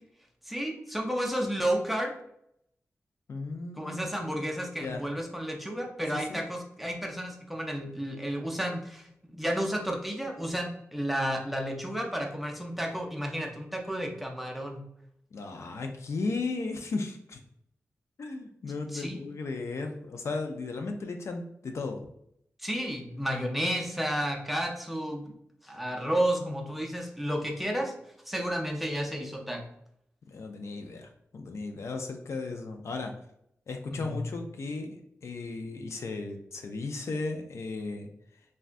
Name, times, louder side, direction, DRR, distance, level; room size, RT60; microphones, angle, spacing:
voice 1, 0.5-2.1 3.8-14.8 18.9-19.2 22.6-25.3 25.6-27.9 28.3-29.7 33.9-34.2, equal, ahead, 2 dB, 0.4 m, -32 dB
voice 2, 3.3-4.1 4.8-5.0 6.1-6.4 15.3-17.4 18.2-22.0 26.0-26.1 26.4-26.9 30.3-33.1 33.7-38.1, left 3 dB, 65° left, 5 dB, 0.4 m, -35 dB
3.5 x 2.1 x 2.5 m, 0.73 s
wide cardioid pair, 135°, 5 cm